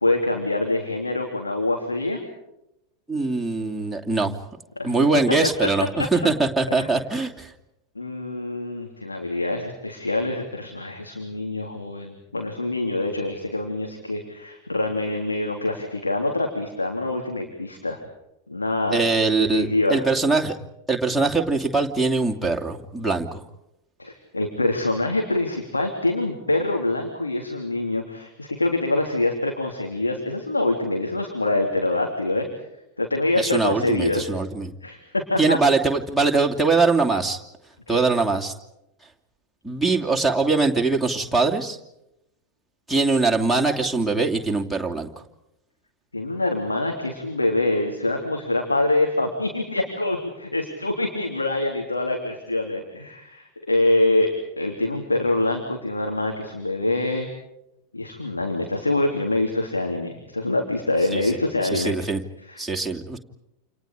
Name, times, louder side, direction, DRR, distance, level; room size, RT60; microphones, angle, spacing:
voice 1, 0.0-2.2 4.8-4.9 6.7-6.9 8.0-18.0 18.5-19.0 19.5-20.0 24.0-32.5 33.0-34.3 34.8-35.6 37.9-38.0 46.1-57.3 57.9-62.0 62.5-62.6, left 2 dB, 80° left, 2 dB, 3.5 m, -25 dB
voice 2, 3.1-4.3 4.8-7.5 18.9-20.6 20.9-23.4 33.4-34.7 35.4-37.4 37.9-38.5 39.6-41.8 42.9-45.1 61.1-61.2 61.7-62.2 62.6-63.2, right 3 dB, ahead, -1 dB, 2.8 m, -22 dB
29.5 x 28.5 x 5.0 m, 0.87 s
figure-of-eight pair, 90°, 0 cm